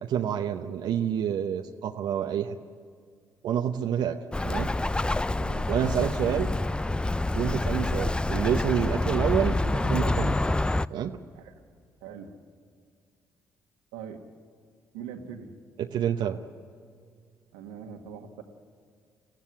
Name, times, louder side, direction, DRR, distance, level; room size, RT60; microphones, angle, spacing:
voice 1, 0.0-2.6 3.4-4.2 4.4-4.7 5.7-6.5 7.4-10.4 10.9-11.2 15.8-16.4, right 9 dB, 70° right, 4 dB, 0.9 m, -28 dB
Bird, 4.3-10.9, left 2 dB, 10° left, 0.5 m, -27 dB
voice 2, 12.0-12.3 13.9-14.2 14.9-15.5 17.5-18.4, right 7 dB, 90° right, 4 dB, 1.7 m, -41 dB
22.5 x 15.0 x 9.7 m, 2.1 s
hypercardioid pair, 50°, 8 cm